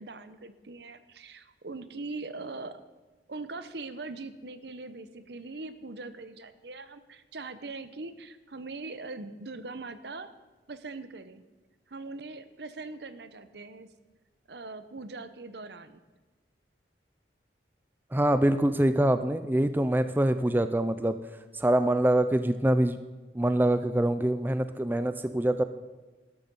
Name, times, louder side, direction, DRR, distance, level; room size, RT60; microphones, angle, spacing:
voice 1, 0.0-2.8 3.3-10.3 10.7-11.4 11.9-13.9 14.5-16.0, right 3 dB, 75° right, 12 dB, 0.9 m, -41 dB
voice 2, 18.1-21.2 21.5-23.0 23.3-25.6, right 1 dB, 10° right, 11 dB, 0.4 m, -24 dB
13.0 x 12.0 x 5.4 m, 1.3 s
head